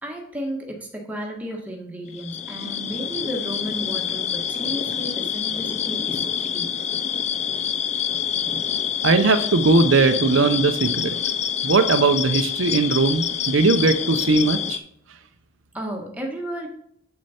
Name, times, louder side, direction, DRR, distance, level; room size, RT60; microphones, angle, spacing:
voice 1, 0.0-6.7 15.7-16.7, equal, 5° right, 0 dB, 1.4 m, -33 dB
sound 1, 2.1-14.8, left 8 dB, 35° left, 0.4 m, -27 dB
voice 2, 9.0-11.1 11.6-14.8, right 3 dB, 70° right, 9 dB, 0.6 m, -19 dB
8.1 x 6.3 x 4.3 m, 0.68 s
head